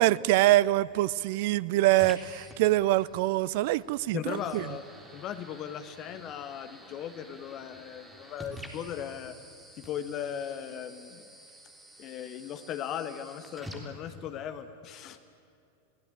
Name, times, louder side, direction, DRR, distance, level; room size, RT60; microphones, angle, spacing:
voice 1, 0.0-4.6, right 16 dB, 50° right, 20 dB, 0.6 m, -24 dB
sound 1, 0.6-14.6, equal, 5° right, 3.8 m, -50 dB
voice 2, 4.1-4.8 5.1-9.3 9.8-11.3 12.0-15.2, left 9 dB, 35° left, 10 dB, 1.3 m, -38 dB
28.5 x 18.5 x 8.8 m, 2.5 s
figure-of-eight pair, 90°, 0 cm